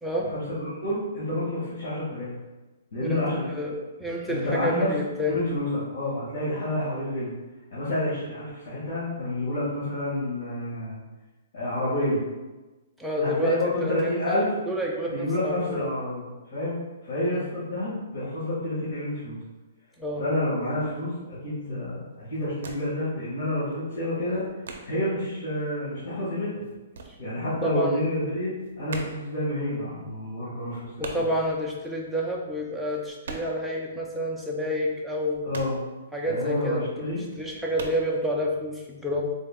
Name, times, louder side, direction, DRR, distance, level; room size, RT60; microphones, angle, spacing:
voice 1, 0.3-2.3 2.9-3.5 4.3-4.9 5.3-7.3 7.7-11.0 11.5-12.2 13.2-14.5 15.1-16.7 17.0-19.4 20.2-24.4 24.8-26.5 27.2-28.5 28.8-31.1 35.4-35.8 36.2-37.2, left 1 dB, 60° left, -10 dB, 1.5 m, -29 dB
voice 2, 3.5-5.4 13.0-15.8 17.3-17.5 20.0-20.3 27.1-27.2 27.6-28.0 31.0-35.5 36.1-39.2, equal, ahead, -2 dB, 0.3 m, -29 dB
sound 1, 20.8-21.1 21.6-21.9 22.1-23.1 23.4-25.2 25.6-27.8 28.1-33.8 34.1-34.2 34.6-36.5 36.9-37.0 37.4-38.0, right 4 dB, 65° right, 0.5 m, -42 dB
3.7 x 2.2 x 3.5 m, 1.2 s
hypercardioid pair, 175°, 0 cm